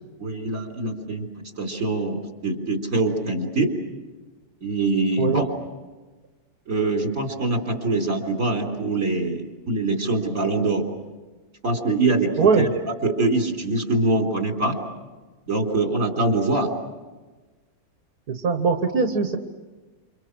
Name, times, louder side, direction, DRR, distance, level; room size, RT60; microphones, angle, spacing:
voice 1, 0.2-1.3 1.6-3.7 4.6-5.4 6.7-10.8 11.6-12.7 13.0-14.8 15.5-16.7, right 2 dB, 60° right, 3 dB, 4.3 m, -24 dB
voice 2, 18.3-19.4, right 5 dB, 85° right, 4 dB, 2.1 m, -21 dB
29.5 x 27.5 x 6.4 m, 1.3 s
omnidirectional pair, 1.5 m